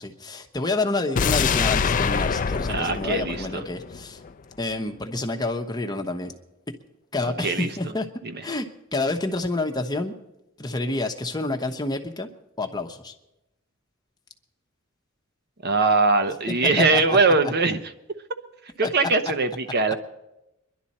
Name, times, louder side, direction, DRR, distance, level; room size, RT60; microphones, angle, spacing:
voice 1, 0.0-4.2 4.6-6.3 7.1-8.1 8.4-8.6 8.9-10.1 10.6-12.3 12.6-13.1 16.8-17.3 18.8-18.9, left 2 dB, 20° left, 5 dB, 1.0 m, -28 dB
sound 1, 1.2-4.3 4.6-4.7, left 5 dB, 40° left, 0.4 m, -25 dB
voice 2, 2.7-3.6 7.2-7.7 15.6-17.8 18.8-19.9, right 3 dB, 50° right, 9 dB, 0.9 m, -21 dB
24.0 x 11.5 x 4.2 m, 0.91 s
head